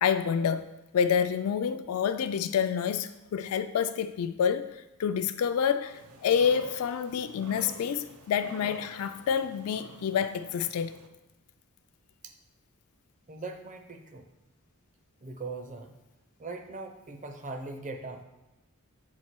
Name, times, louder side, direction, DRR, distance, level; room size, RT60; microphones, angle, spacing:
voice 1, 0.0-10.9, left 7 dB, 70° left, 0.3 m, -28 dB
sound 1, 5.9-11.1, right 4 dB, 80° right, 0.6 m, -48 dB
voice 2, 13.3-14.3 15.2-15.9 16.4-18.2, right 3 dB, 35° right, 0.6 m, -40 dB
6.5 x 4.3 x 4.5 m
head